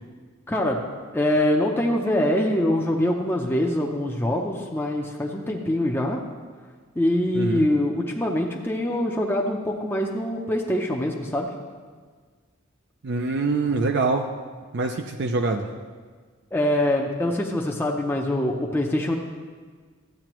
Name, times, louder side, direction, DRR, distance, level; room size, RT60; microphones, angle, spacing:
voice 1, 0.5-0.8 1.1-6.2 7.0-11.5 16.5-19.1, left 1 dB, 10° left, -1 dB, 0.6 m, -24 dB
voice 2, 7.3-7.7 13.0-14.3 14.7-15.7, right 3 dB, 55° right, 4 dB, 0.5 m, -24 dB
13.5 x 8.5 x 3.0 m, 1.6 s
head